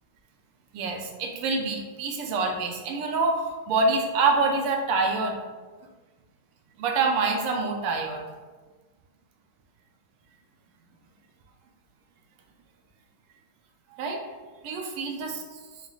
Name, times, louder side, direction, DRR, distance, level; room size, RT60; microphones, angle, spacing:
voice 1, 0.7-5.4 6.8-8.2 13.9-14.2 14.6-15.4, right 3 dB, 90° right, 2 dB, 1.6 m, -26 dB
4.9 x 2.4 x 3.8 m, 1.3 s
omnidirectional pair, 2.4 m